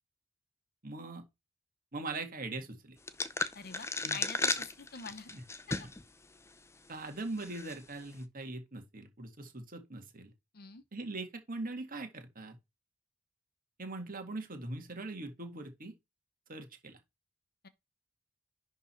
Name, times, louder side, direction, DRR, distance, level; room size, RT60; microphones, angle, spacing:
voice 1, 0.8-1.2 1.9-3.0 4.0-4.2 5.3-5.4 5.8-5.9 6.9-10.3 10.9-12.6 13.8-15.9 16.5-17.0, right 2 dB, 40° right, 1.9 m, -41 dB
sound 1, 3.1-6.1 6.5-6.6 7.4-7.8, left 3 dB, 15° left, 0.6 m, -34 dB
voice 2, 3.5-5.3 5.7-5.8 10.5-10.8 17.6-17.7, left 5 dB, 45° left, 1.0 m, -46 dB
11.0 x 3.8 x 4.4 m
head